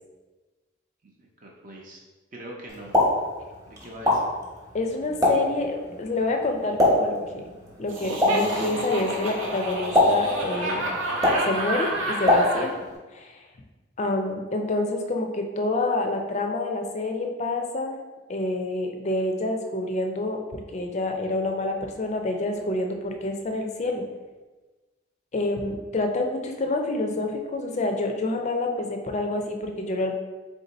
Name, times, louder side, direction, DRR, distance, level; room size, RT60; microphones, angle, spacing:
voice 1, 1.0-2.0 2.3-3.0 3.7-4.3, equal, 40° right, -2 dB, 0.5 m, -42 dB
Explosion, 2.7-13.0, left 1 dB, 20° right, 0.8 m, -26 dB
voice 2, 4.7-7.4 7.8-10.8 11.4-12.8 13.1-13.4 14.0-18.0 18.3-24.0 25.3-30.1, left 2 dB, 35° left, 4 dB, 0.4 m, -27 dB
Laughter, 7.9-12.7, right 1 dB, 85° right, 0.7 m, -29 dB
3.6 x 2.6 x 4.0 m, 1.2 s
head